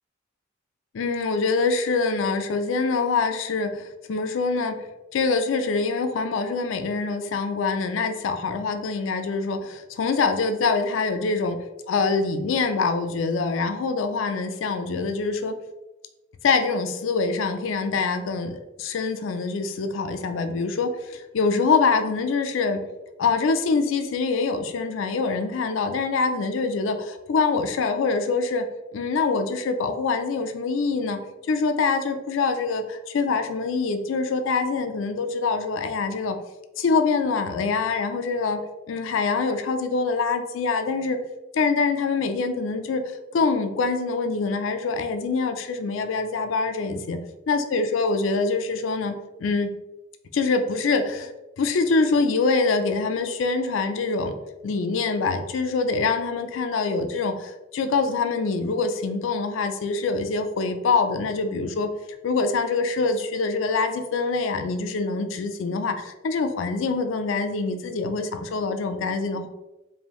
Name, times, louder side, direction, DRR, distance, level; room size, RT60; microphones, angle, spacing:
voice 1, 0.9-4.9 5.1-11.6 11.9-15.6 16.4-22.8 23.2-28.7 28.9-31.2 31.5-36.4 36.8-38.6 38.9-41.2 41.5-43.0 43.3-47.2 47.5-49.7 50.3-51.3 51.6-54.3 54.6-61.9 62.2-69.5, left 4 dB, 75° left, 8 dB, 0.4 m, -25 dB
4.6 x 2.6 x 3.0 m, 1.0 s
head